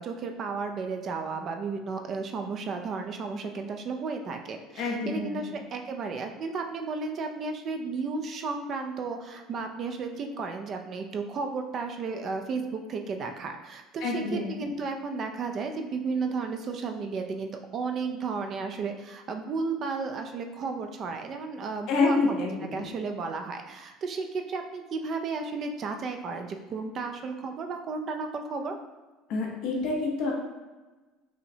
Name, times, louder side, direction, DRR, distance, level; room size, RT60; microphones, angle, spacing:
voice 1, 0.0-28.8, right 4 dB, 35° right, 5 dB, 0.3 m, -33 dB
voice 2, 4.8-5.5 14.0-14.7 21.9-22.8 29.3-30.3, left 3 dB, 55° left, -2 dB, 0.8 m, -28 dB
5.5 x 2.1 x 2.7 m, 1.2 s
cardioid pair, 165°, 0 cm